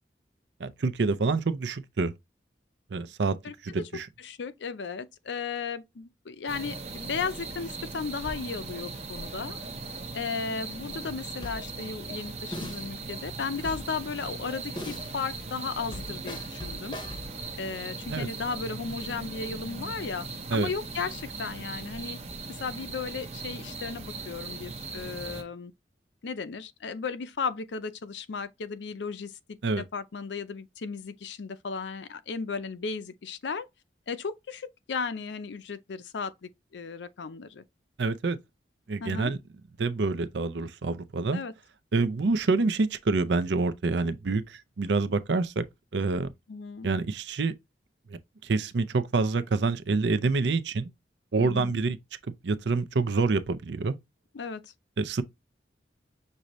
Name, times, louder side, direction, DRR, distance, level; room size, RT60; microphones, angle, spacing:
voice 1, 0.6-2.1 2.9-3.4 3.6-4.1 18.1-18.3 20.5-20.7 29.6-29.8 38.0-38.4 38.9-39.4 39.8-41.4 41.9-45.6 45.9-46.3 46.8-47.5 48.1-50.9 51.3-52.0 52.4-54.0 55.0-55.2, right 3 dB, 75° right, 0.5 m, -27 dB
voice 2, 3.4-3.9 4.2-9.6 10.1-17.0 17.6-22.2 22.6-25.7 26.2-33.7 34.1-37.6 39.0-39.3 41.3-41.5 46.5-46.9 51.4-51.8 54.3-54.6, left 5 dB, 80° left, 0.5 m, -35 dB
sound 1, 6.5-25.4, right 3 dB, 35° right, 0.8 m, -39 dB
sound 2, 11.4-11.8 12.5-12.9 13.7-14.1 14.8-15.2 15.9-17.4, left 1 dB, 25° left, 0.7 m, -40 dB
6.3 x 2.7 x 3.0 m
head